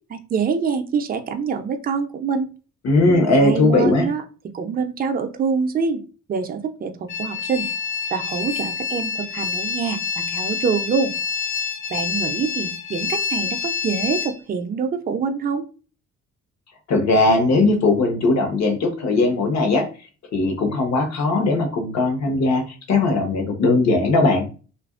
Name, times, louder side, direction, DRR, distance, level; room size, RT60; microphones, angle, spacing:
voice 1, 0.1-2.5 3.4-4.2 4.5-6.0 6.3-7.7 8.1-11.1 11.9-15.6, right 5 dB, 30° right, 6 dB, 0.5 m, -25 dB
voice 2, 2.8-4.1 16.9-19.9 20.3-22.6 22.9-24.4, left 2 dB, 65° left, 4 dB, 1.0 m, -18 dB
sound 1, 7.1-14.3, left 6 dB, 40° left, 0.6 m, -27 dB
2.7 x 2.5 x 2.4 m, 0.35 s
cardioid pair, 90°, 30 cm